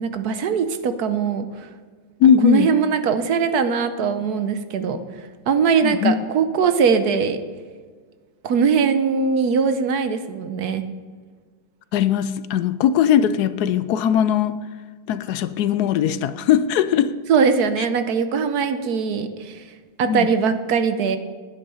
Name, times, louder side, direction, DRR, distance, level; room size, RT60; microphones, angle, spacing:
voice 1, 0.0-1.7 2.4-5.0 5.5-7.4 8.4-10.8 17.3-19.6 20.0-21.2, right 6 dB, 65° right, 9 dB, 1.2 m, -21 dB
voice 2, 2.2-2.7 5.8-6.1 11.9-14.6 15.1-17.1 20.1-20.3, left 9 dB, 70° left, 13 dB, 1.0 m, -19 dB
10.0 x 9.8 x 5.5 m, 1.5 s
omnidirectional pair, 2.0 m